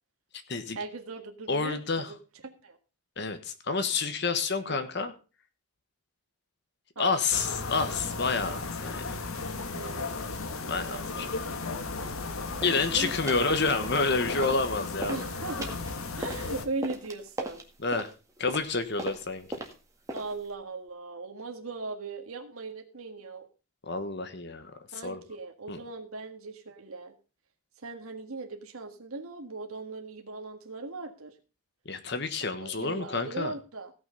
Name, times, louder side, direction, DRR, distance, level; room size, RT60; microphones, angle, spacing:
voice 1, 0.8-2.2 2.4-2.8 4.7-4.8 7.0-7.1 9.7-10.4 10.9-11.3 12.6-13.5 15.1-15.8 16.1-17.6 20.1-23.5 24.9-27.1 27.8-31.4 32.4-33.9, right 3 dB, 85° right, 4 dB, 1.7 m, -39 dB
voice 2, 1.5-2.1 3.2-5.1 7.0-9.1 10.7-11.3 12.6-15.2 17.8-18.1 18.4-19.5 23.9-24.7 25.0-25.2 25.7-25.8 31.9-33.5, left 4 dB, 50° left, 8 dB, 1.2 m, -29 dB
sound 1, 7.3-16.7, left 3 dB, 80° left, 1.5 m, -35 dB
sound 2, 12.6-12.8 13.3-13.5 13.8-14.7 15.0-20.5, right 1 dB, 15° right, 1.8 m, -39 dB
16.5 x 6.2 x 5.3 m, 0.34 s
head